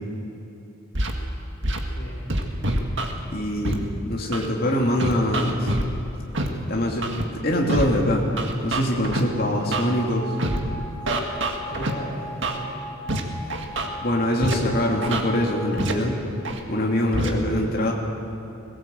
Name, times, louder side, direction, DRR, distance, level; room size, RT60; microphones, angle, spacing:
Scratching (performance technique), 0.9-1.1 1.6-1.8 2.3-3.1 3.6-3.7 4.3-4.5 5.0-5.8 6.3-6.5 7.0-7.2 7.7-7.8 8.4-9.2 9.7-9.9 10.4-10.6 11.1-11.9 12.4-12.6 13.1-13.2 13.5-13.9 14.4-14.5 15.0-15.2 15.8-15.9 16.4-16.6 17.1-17.3, right 1 dB, 60° right, 1.9 m, -25 dB
voice 1, 1.9-2.3 11.6-12.8, equal, 65° left, -6 dB, 4.5 m, -38 dB
voice 2, 3.2-5.7 6.7-7.1 7.3-8.3 8.6-10.4 14.0-16.2 16.7-17.9, left 1 dB, 45° left, -1 dB, 2.7 m, -23 dB
sound 1, 9.1-15.7, right 1 dB, 85° left, 4.3 m, -39 dB
21.0 x 17.5 x 7.9 m, 2.9 s
head